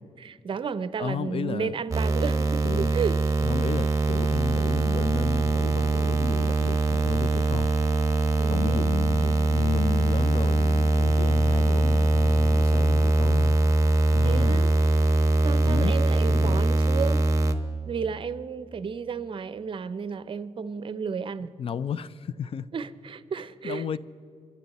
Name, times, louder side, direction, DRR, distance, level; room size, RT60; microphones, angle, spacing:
voice 1, 0.2-3.2 8.4-8.9 9.2-9.5 14.2-14.7 15.4-17.2 17.9-21.5 22.7-24.0, right 6 dB, 50° right, 0.6 m, -32 dB
voice 2, 1.0-1.7 2.6-2.9 3.4-7.7 8.5-13.6 14.1-14.7 15.6-15.9 16.3-16.7 21.6-22.7 23.6-24.0, left 7 dB, 55° left, 0.5 m, -32 dB
sound 1, 1.9-17.5, right 2 dB, 30° right, 1.1 m, -22 dB
28.0 x 12.0 x 4.2 m
wide cardioid pair, 115°, 11 cm